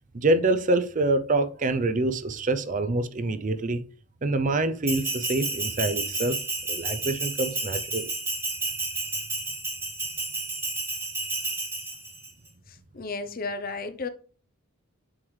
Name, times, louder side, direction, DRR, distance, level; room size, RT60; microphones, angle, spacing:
voice 1, 0.1-3.8 4.2-6.4 6.7-8.1, right 2 dB, 35° right, 0.5 m, -26 dB
Bell, 4.9-12.3, right 3 dB, 10° right, 1.3 m, -31 dB
voice 2, 12.7-14.1, left 3 dB, 40° left, 0.6 m, -33 dB
7.3 x 4.7 x 3.2 m
head